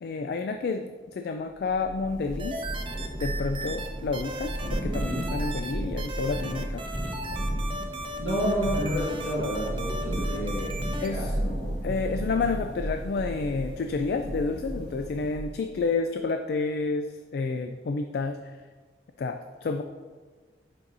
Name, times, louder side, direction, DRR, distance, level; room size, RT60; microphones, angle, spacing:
voice 1, 0.0-2.6 3.2-6.8 11.0-11.3 11.8-17.1 17.3-18.4 19.2-19.8, left 4 dB, 60° left, 6 dB, 0.3 m, -30 dB
Thunder / Rain, 1.7-15.8, right 1 dB, 45° right, 2.0 m, -33 dB
sound 1, 2.4-3.9 4.1-5.7 6.0-11.1, right 1 dB, 30° right, 0.6 m, -37 dB
voice 2, 8.2-11.7 12.2-12.4, equal, 85° left, -7 dB, 1.6 m, -30 dB
8.4 x 5.6 x 2.6 m, 1.4 s
head